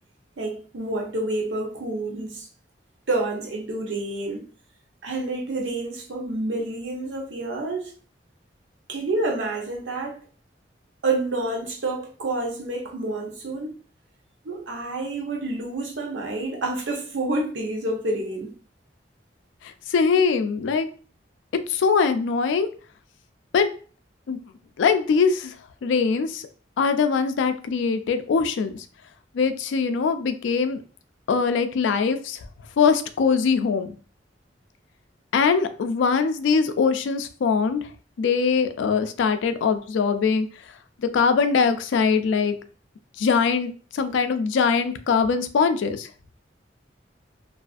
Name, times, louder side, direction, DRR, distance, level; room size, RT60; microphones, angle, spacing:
voice 1, 0.4-2.5 3.1-4.4 5.0-7.9 8.9-10.2 11.0-13.7 14.4-18.5, right 2 dB, 85° right, 0.6 m, -28 dB
voice 2, 19.6-20.9 21.7-22.7 23.5-23.7 24.3-24.4 24.8-25.5 25.8-26.4 26.8-28.8 29.3-30.8 31.3-32.4 32.8-33.9 35.3-37.9 38.2-40.5 41.1-42.5 43.2-46.1, left 5 dB, 85° left, 0.3 m, -22 dB
2.4 x 2.4 x 2.3 m
head